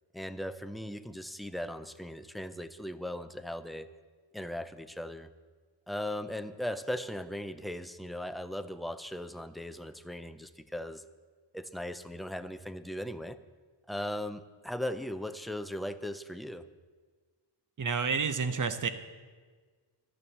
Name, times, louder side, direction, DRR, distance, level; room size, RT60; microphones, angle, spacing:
voice 1, 0.1-3.9 4.3-5.3 5.9-11.0 11.5-13.4 13.9-16.6, left 1 dB, ahead, 10 dB, 0.4 m, -38 dB
voice 2, 17.8-18.9, right 5 dB, 45° right, 11 dB, 0.9 m, -29 dB
12.0 x 9.8 x 7.3 m, 1.5 s
wide cardioid pair, 140°, 43 cm